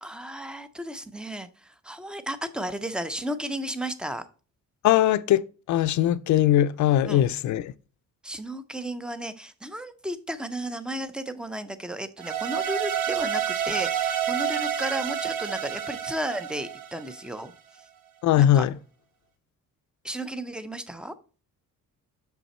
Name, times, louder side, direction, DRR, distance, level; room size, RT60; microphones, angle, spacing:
voice 1, 0.0-4.3 7.0-7.2 8.2-17.5 18.3-18.7 20.0-21.1, right 1 dB, 5° right, 0.4 m, -34 dB
voice 2, 4.8-7.7 18.2-18.7, left 12 dB, 60° left, 0.5 m, -21 dB
sound 1, 12.2-17.4, right 9 dB, 90° right, 0.9 m, -29 dB
6.6 x 5.4 x 4.2 m
cardioid pair, 150°, 33 cm